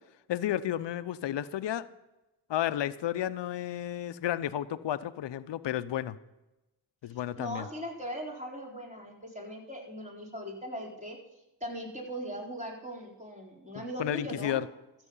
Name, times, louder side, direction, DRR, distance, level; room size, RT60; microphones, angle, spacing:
voice 1, 0.3-1.8 2.5-6.2 7.0-7.7 13.7-14.7, left 11 dB, 70° left, 14 dB, 0.7 m, -32 dB
voice 2, 7.4-11.2 11.6-14.6, equal, 15° right, -2 dB, 4.2 m, -39 dB
14.0 x 7.8 x 5.6 m, 0.97 s
supercardioid pair, 45°, 45 cm